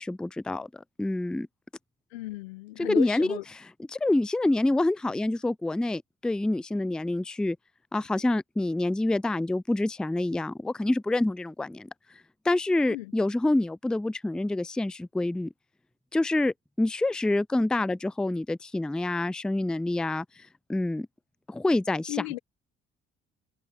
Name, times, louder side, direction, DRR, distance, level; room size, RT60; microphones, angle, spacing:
voice 1, 0.0-1.5 2.8-3.4 3.9-7.6 7.9-11.9 12.4-15.5 16.1-21.1 21.5-22.1, left 2 dB, 5° left, 0.4 m, -27 dB
voice 2, 2.1-3.4 12.9-13.1 22.1-22.4, left 19 dB, 85° left, 1.1 m, -34 dB
hypercardioid pair, 50°, 31 cm